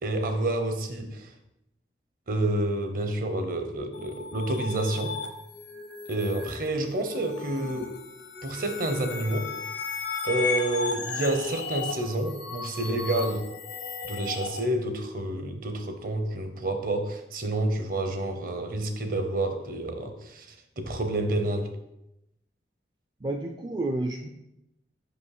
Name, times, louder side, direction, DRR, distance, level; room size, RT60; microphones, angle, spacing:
voice 1, 0.0-1.3 2.3-5.2 6.1-8.0 8.4-9.5 10.2-13.5 14.0-21.7, right 1 dB, 50° right, 6 dB, 0.8 m, -29 dB
sound 1, 3.9-14.6, left 5 dB, 80° left, 0.8 m, -35 dB
voice 2, 23.2-24.3, right 2 dB, 25° right, 3 dB, 0.4 m, -30 dB
5.5 x 5.1 x 4.9 m, 0.87 s
head